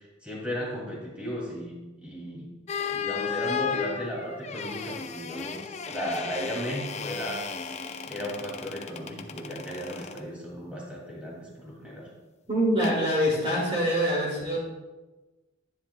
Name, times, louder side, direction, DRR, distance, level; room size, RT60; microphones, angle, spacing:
voice 1, 0.2-1.7 2.0-2.5 2.9-7.4 8.1-12.1, equal, 5° right, -4 dB, 2.4 m, -35 dB
sound 1, 2.7-10.2 12.8-13.0, left 6 dB, 35° left, 0.5 m, -34 dB
voice 2, 12.5-14.6, equal, 30° right, -5 dB, 2.0 m, -25 dB
11.5 x 10.0 x 2.2 m, 1.2 s
head